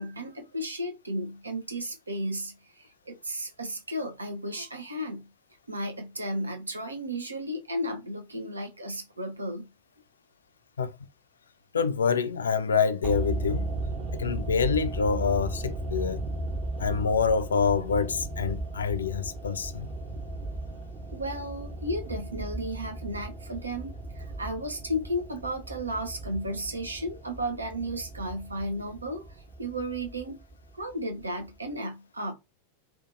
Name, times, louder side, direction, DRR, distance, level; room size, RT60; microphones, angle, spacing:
voice 1, 0.0-5.3 5.7-9.7 21.1-30.4 30.7-32.3, equal, 80° right, 0.6 m, -34 dB
voice 2, 11.7-13.6 14.2-16.2 16.8-19.9, left 6 dB, 70° left, 0.3 m, -26 dB
sound 1, 13.0-31.2 31.5-31.6, right 2 dB, 30° right, 1.0 m, -36 dB
2.6 x 2.4 x 2.4 m
figure-of-eight pair, 90°, 0 cm